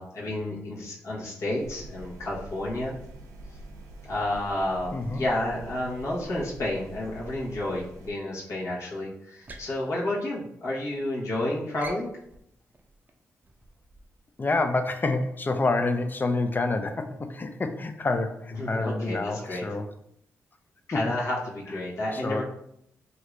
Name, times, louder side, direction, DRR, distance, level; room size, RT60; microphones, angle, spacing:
voice 1, 0.0-3.0 4.0-12.1 18.5-19.7 20.9-22.4, left 1 dB, 60° left, -5 dB, 1.1 m, -31 dB
sound 1, 1.6-8.1, right 2 dB, 90° right, 0.4 m, -45 dB
voice 2, 4.9-5.3 14.4-19.9 20.9-21.0 22.1-22.4, left 3 dB, 35° left, 7 dB, 0.4 m, -28 dB
sound 2, 9.3-10.9 11.2-11.4 11.8-14.3, right 2 dB, 30° right, 0.5 m, -47 dB
2.7 x 2.5 x 3.2 m, 0.74 s
supercardioid pair, 50°, 6 cm